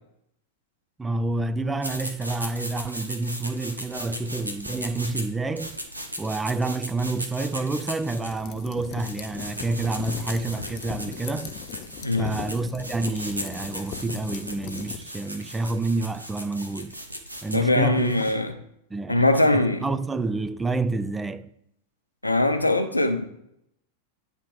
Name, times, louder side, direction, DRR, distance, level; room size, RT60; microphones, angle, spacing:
voice 1, 1.0-5.8 6.2-11.5 12.2-16.9 17.4-18.2 18.9-19.2 19.5-21.5, right 3 dB, 10° right, 0.3 m, -28 dB
sound 1, 1.8-18.5, equal, 85° right, 0.8 m, -37 dB
sound 2, 8.3-15.0, left 9 dB, 40° left, 0.6 m, -39 dB
voice 2, 12.0-12.3 17.5-18.5 19.1-19.8 22.2-23.2, left 2 dB, 85° left, 0.7 m, -21 dB
9.2 x 3.4 x 4.8 m
figure-of-eight pair, 90°, 0 cm